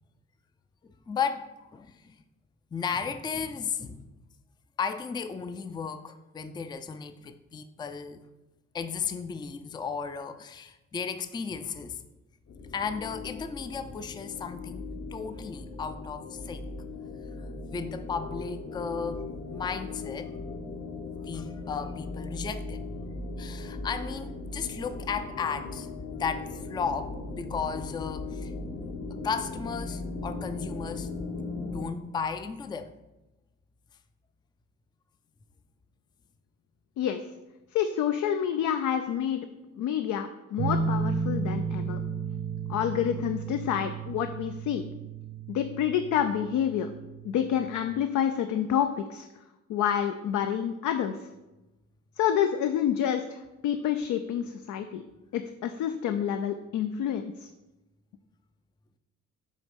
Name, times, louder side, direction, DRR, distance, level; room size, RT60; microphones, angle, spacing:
voice 1, 0.8-2.2 2.7-4.1 4.8-8.2 8.7-12.0 12.7-16.7 17.4-20.3 21.2-22.8 23.4-25.9 26.1-28.5 29.1-31.1 31.6-33.0, left 6 dB, 15° left, 10 dB, 0.4 m, -35 dB
sound 1, 12.5-31.8, left 3 dB, 55° left, 0.9 m, -38 dB
voice 2, 37.7-39.4 39.8-42.0 42.7-44.8 45.5-46.9 47.2-49.3 49.7-51.3 52.2-55.0 55.3-57.5, left 9 dB, 75° left, 7 dB, 0.5 m, -28 dB
sound 2, 40.6-47.8, right 5 dB, 80° right, 1.1 m, -33 dB
7.5 x 3.1 x 5.2 m, 1.0 s
cardioid pair, 90°, 30 cm